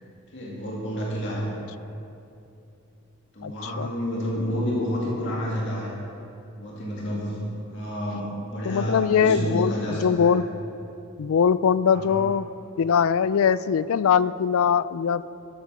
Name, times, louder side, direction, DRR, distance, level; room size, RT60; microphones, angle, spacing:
voice 1, 0.3-1.5 3.3-5.9 6.6-7.4 7.7-10.4 11.9-12.2, equal, 55° left, -5 dB, 2.4 m, -29 dB
voice 2, 3.4-3.9 8.7-10.5 11.2-12.5 12.8-15.3, left 7 dB, 70° left, 16 dB, 0.3 m, -22 dB
13.5 x 8.1 x 6.5 m, 2.8 s
head